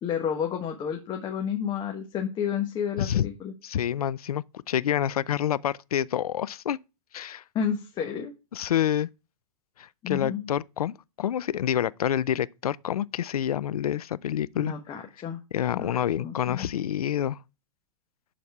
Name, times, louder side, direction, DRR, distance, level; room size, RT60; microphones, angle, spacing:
voice 1, 0.0-3.5 7.5-8.3 10.0-10.5 14.5-15.4 15.7-15.9 16.2-16.7, left 8 dB, 25° left, 1.3 m, -31 dB
voice 2, 3.0-3.3 3.6-6.8 7.1-7.4 8.5-9.1 9.8-14.7 15.5-17.4, left 10 dB, 90° left, 0.5 m, -28 dB
11.0 x 4.2 x 4.7 m
hypercardioid pair, 125°, 19 cm